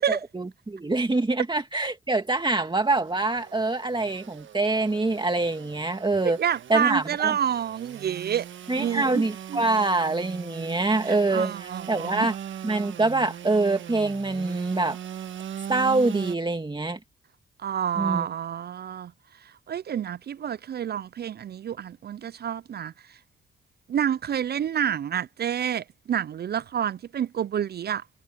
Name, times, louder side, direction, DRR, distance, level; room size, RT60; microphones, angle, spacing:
voice 1, 0.1-7.4 8.7-12.4 12.6-15.0 15.7-17.0 18.0-18.3, right 2 dB, 20° right, 2.0 m, -25 dB
Engine / Sawing, 2.6-16.4, right 9 dB, 70° right, 1.5 m, -40 dB
voice 2, 6.4-8.5 8.8-9.2 9.5-9.6 11.1-12.3 17.6-19.1 19.7-22.9 23.9-28.0, right 9 dB, 50° right, 0.5 m, -28 dB
supercardioid pair, 45°, 21 cm